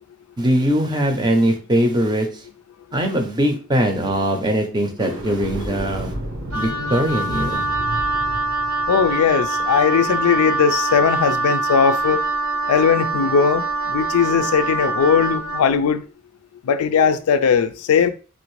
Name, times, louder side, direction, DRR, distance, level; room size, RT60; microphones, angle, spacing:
voice 1, 0.4-2.3 2.9-6.1 6.5-7.7, right 1 dB, 20° right, 0.5 m, -21 dB
sound 1, 4.9-10.2, right 1 dB, 85° right, 1.2 m, -32 dB
Wind instrument woodwind instrument, 6.5-15.7, right 3 dB, 70° right, 0.6 m, -24 dB
voice 2, 8.9-12.2 12.7-16.0 16.6-18.1, left 6 dB, 85° left, 0.4 m, -18 dB
3.2 x 2.5 x 3.1 m
head